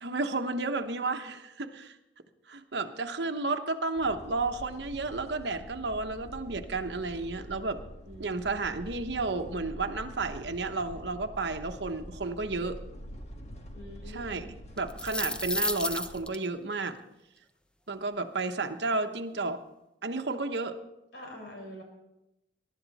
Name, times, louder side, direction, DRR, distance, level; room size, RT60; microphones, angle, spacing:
voice 1, 0.0-2.0 2.5-7.8 8.2-12.8 14.1-17.0 17.9-19.6 20.0-20.8, right 3 dB, 65° right, 6 dB, 1.0 m, -32 dB
sound 1, 4.0-16.2, equal, 35° left, 1.5 m, -46 dB
voice 2, 8.0-8.4 13.7-14.4 21.1-21.8, equal, 65° left, 0 dB, 4.6 m, -45 dB
sound 2, 14.8-16.3, left 2 dB, 5° left, 0.5 m, -31 dB
22.0 x 11.5 x 4.1 m, 0.90 s
head